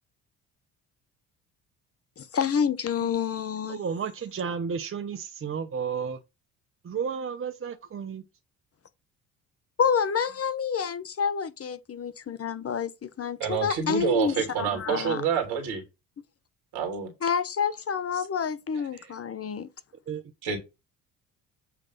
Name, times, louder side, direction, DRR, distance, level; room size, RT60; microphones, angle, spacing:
voice 1, 2.2-3.8 9.8-15.2 17.2-19.7, left 7 dB, 35° left, 1.0 m, -28 dB
voice 2, 3.7-6.2 6.8-8.2 20.1-20.2, right 6 dB, 35° right, 0.9 m, -32 dB
voice 3, 13.4-15.8 16.7-17.1 19.0-19.1 20.4-20.6, right 7 dB, 70° right, 2.9 m, -28 dB
8.3 x 3.4 x 5.5 m
hypercardioid pair, 55°, 40 cm